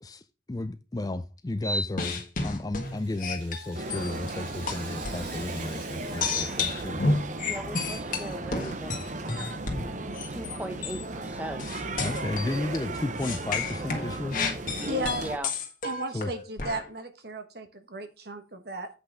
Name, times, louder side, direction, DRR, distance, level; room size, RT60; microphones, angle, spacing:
voice 1, 0.5-7.1 12.0-14.4 16.1-16.3, left 2 dB, 20° left, 0.4 m, -33 dB
sound 1, 1.6-4.3 4.7-5.3 6.2-10.6 10.8-11.0 11.6-12.8 13.2-16.8, left 3 dB, 45° left, 1.6 m, -31 dB
Rattle (instrument), 2.7-8.0 8.3-8.4 9.2-9.3, right 3 dB, 75° right, 4.3 m, -48 dB
sound 2, 3.7-15.4, right 2 dB, 40° right, 0.7 m, -36 dB
voice 2, 7.4-9.2 10.3-11.9 14.8-15.5, equal, 10° right, 1.0 m, -38 dB
voice 3, 14.8-15.2 15.8-18.9, right 1 dB, 55° right, 1.3 m, -35 dB
8.1 x 5.6 x 4.9 m
head